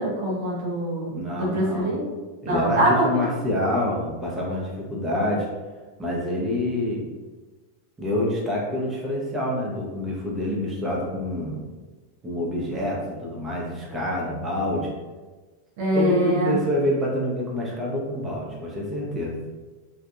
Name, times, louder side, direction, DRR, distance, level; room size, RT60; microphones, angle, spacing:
voice 1, 0.0-2.0 2.4-3.3 15.8-16.6, right 1 dB, 50° right, -4 dB, 0.7 m, -24 dB
voice 2, 1.1-1.9 2.4-5.5 6.0-7.0 8.0-11.6 12.2-14.9 15.9-19.3, left 1 dB, 15° right, -4 dB, 0.7 m, -27 dB
2.6 x 2.3 x 2.3 m, 1.3 s
figure-of-eight pair, 90°, 0 cm